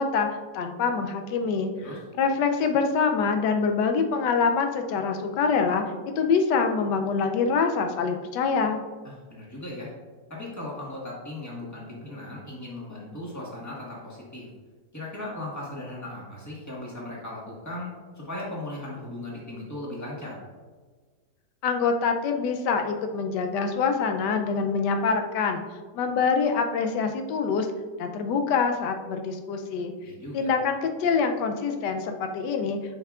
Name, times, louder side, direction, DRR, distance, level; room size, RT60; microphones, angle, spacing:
voice 1, 0.0-1.9 2.2-5.8 6.2-8.8 21.6-25.6 25.9-27.7 28.0-29.9 30.3-32.8, left 5 dB, 85° left, 5 dB, 1.2 m, -25 dB
voice 2, 9.0-9.9 10.3-14.5 14.9-20.4 30.0-30.5, left 1 dB, 10° left, -5 dB, 1.4 m, -37 dB
7.2 x 5.4 x 2.4 m, 1.4 s
omnidirectional pair, 1.8 m